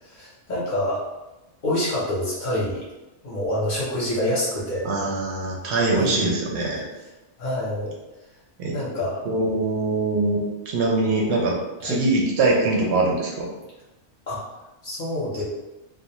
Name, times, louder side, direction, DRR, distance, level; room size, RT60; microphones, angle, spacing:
voice 1, 0.1-1.1 1.6-2.8 3.2-4.9 5.9-6.3 7.4-7.9 8.7-9.2 11.8-12.0 14.3-14.4 14.8-15.4, left 1 dB, 50° left, -7 dB, 0.7 m, -26 dB
voice 2, 4.8-6.8 8.6-8.7 9.2-11.6 11.8-13.5, right 2 dB, 70° right, -2 dB, 0.8 m, -23 dB
2.4 x 2.1 x 2.8 m, 1.0 s
omnidirectional pair, 1.2 m